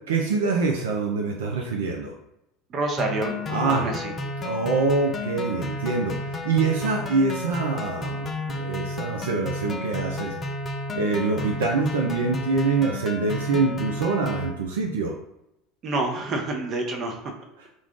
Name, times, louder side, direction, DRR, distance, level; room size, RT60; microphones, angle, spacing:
voice 1, 0.1-2.1 3.5-3.9 4.4-10.4 11.0-15.1, right 4 dB, 75° right, 1 dB, 0.3 m, -25 dB
voice 2, 2.7-4.1 15.8-17.2, right 2 dB, 40° right, 3 dB, 0.7 m, -28 dB
sound 1, 3.0-14.5, left 1 dB, 30° left, 0.5 m, -32 dB
2.5 x 2.3 x 3.5 m, 0.84 s
hypercardioid pair, 75°, 0 cm